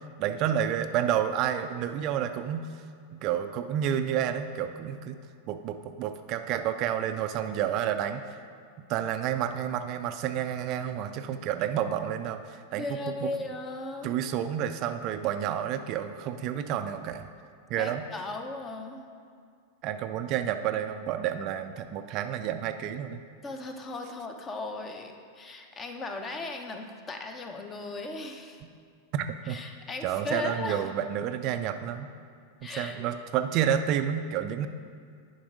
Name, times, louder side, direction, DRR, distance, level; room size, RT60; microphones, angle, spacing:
voice 1, 0.2-2.8 3.1-5.2 5.5-8.4 8.9-12.8 13.2-13.3 14.0-17.3 17.7-18.1 19.8-23.2 29.1-29.6 30.0-32.1 32.6-34.7, right 9 dB, 40° right, 8 dB, 0.4 m, -30 dB
voice 2, 12.7-14.1 17.7-19.0 23.4-28.6 29.5-30.8 32.6-33.0, left 2 dB, 25° left, 5 dB, 0.9 m, -37 dB
10.0 x 5.3 x 5.1 m, 2.2 s
figure-of-eight pair, 90°, 0 cm